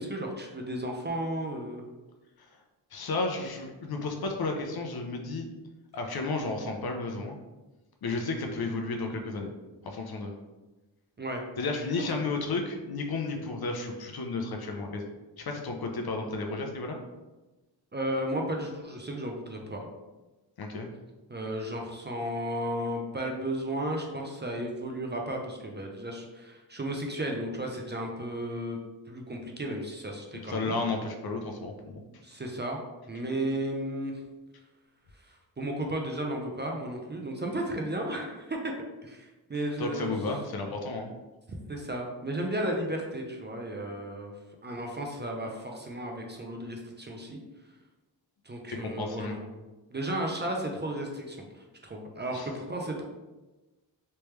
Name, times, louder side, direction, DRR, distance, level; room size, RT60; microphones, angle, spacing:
voice 1, 0.0-1.8 11.2-11.4 17.9-19.9 21.3-28.8 29.1-30.8 32.2-32.8 33.1-34.2 35.3-38.7 39.0-40.1 41.5-44.3 44.6-47.4 48.4-49.6 49.9-53.0, right 1 dB, 25° right, 1 dB, 0.5 m, -34 dB
voice 2, 2.9-5.5 5.9-7.4 8.0-9.5 9.8-10.3 11.6-15.0 15.4-17.0 20.6-20.9 30.4-32.0 39.8-41.1 48.7-49.4 52.3-52.5, left 3 dB, 60° left, 3 dB, 0.6 m, -32 dB
3.3 x 3.0 x 3.2 m, 1.1 s
wide cardioid pair, 105°, 43 cm